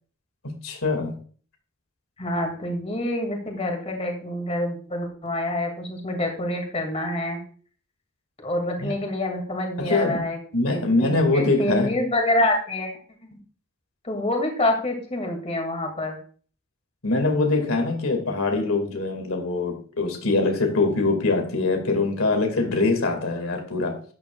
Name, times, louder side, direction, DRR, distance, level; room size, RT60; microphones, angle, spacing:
voice 1, 0.4-1.2 8.8-8.9 9.8-10.2 10.5-11.9 17.0-24.0, left 3 dB, 85° left, 3 dB, 2.3 m, -23 dB
voice 2, 2.2-7.4 8.4-12.9 14.0-16.2, left 1 dB, 30° left, 3 dB, 2.4 m, -27 dB
12.5 x 10.0 x 2.4 m, 0.43 s
head